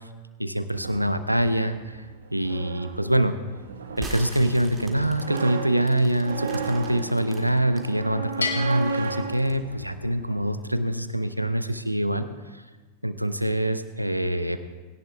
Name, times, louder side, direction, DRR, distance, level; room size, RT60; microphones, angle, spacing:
voice 1, 0.4-2.0 2.3-3.4 4.0-12.3 13.0-14.6, right 1 dB, 90° right, 11 dB, 0.6 m, -25 dB
sound 1, 0.7-10.7, right 4 dB, 70° right, 1.0 m, -35 dB
sound 2, 4.0-7.9 8.3-9.6, right 2 dB, 20° right, 2.1 m, -42 dB
Bell, 8.4-10.1, left 4 dB, 75° left, 1.5 m, -33 dB
17.5 x 17.0 x 2.3 m, 1.3 s
figure-of-eight pair, 90°, 0 cm